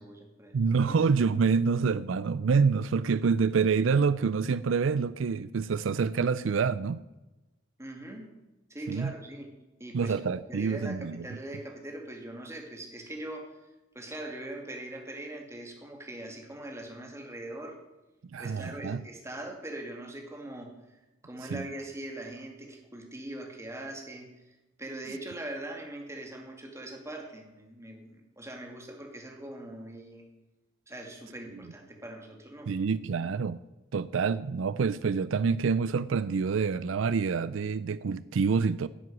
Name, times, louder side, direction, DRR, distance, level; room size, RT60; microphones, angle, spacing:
voice 1, 0.0-0.5 0.9-1.0 7.8-8.3 8.7-9.5 9.8-10.1 10.5-13.5 13.9-17.8 18.4-21.0 21.2-24.3 24.8-30.3 30.9-32.7, right 1 dB, 15° right, 2 dB, 2.4 m, -41 dB
voice 2, 0.5-7.0 8.9-9.1 9.9-11.3 18.3-19.0 21.5-21.7 32.7-33.6 33.9-38.9, right 5 dB, 80° right, 16 dB, 0.4 m, -27 dB
11.5 x 7.8 x 9.3 m, 1.0 s
head